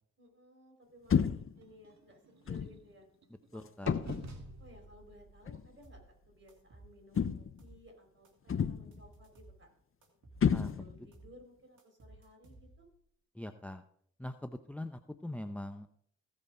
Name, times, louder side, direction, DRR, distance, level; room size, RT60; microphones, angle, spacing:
voice 1, 0.2-3.1 3.5-4.0 4.6-9.7 10.7-12.8, equal, 40° right, 2 dB, 4.7 m, -58 dB
sound 1, 1.1-1.6 2.5-2.8 3.9-4.4 5.5-5.7 7.2-7.7 8.5-9.0 10.4-11.1, left 7 dB, 45° left, 0.6 m, -31 dB
sound 2, 1.2-3.5 3.9-7.8, right 2 dB, 65° right, 2.1 m, -51 dB
voice 2, 3.5-3.9 10.5-10.7 13.3-13.8 14.2-15.9, left 1 dB, 5° left, 9 dB, 0.7 m, -42 dB
sound 3, 5.8-6.1 6.5-7.8 8.2-9.6 10.0-11.4 11.8-13.0, right 2 dB, 85° right, 2.4 m, -57 dB
16.0 x 5.4 x 4.9 m, 0.65 s
cardioid pair, 50°, 30 cm